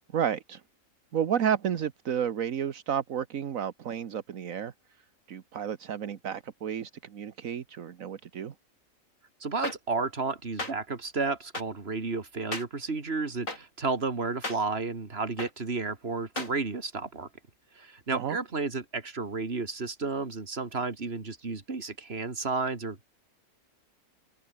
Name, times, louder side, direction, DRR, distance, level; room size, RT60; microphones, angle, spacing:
voice 1, 0.1-0.6 1.1-4.7 5.3-8.5 18.1-18.4, right 8 dB, 75° right, 1.5 m, -31 dB
voice 2, 9.4-17.3 17.8-23.0, right 4 dB, 45° right, 2.7 m, -32 dB
sound 1, 9.6-9.7 10.6-10.7 11.5-11.6 12.5-12.6 13.5-13.6 14.4-14.6 15.4-15.5 16.4-16.5, left 2 dB, 70° left, 6.7 m, -33 dB
open air
omnidirectional pair, 1.4 m